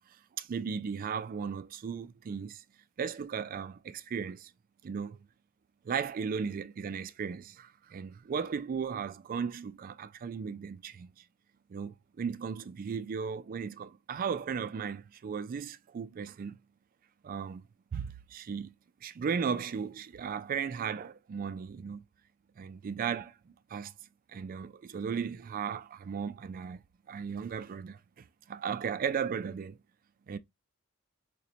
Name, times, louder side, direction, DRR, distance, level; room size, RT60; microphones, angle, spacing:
voice 1, 0.4-2.6 3.0-4.5 4.8-5.2 5.8-11.1 11.7-16.6 17.2-17.6 17.9-18.7 19.0-22.0 22.6-23.4 23.7-23.9 24.3-26.8 27.1-29.8 30.3-30.4, right 6 dB, 40° right, 0.3 m, -36 dB
4.9 x 2.2 x 2.7 m
head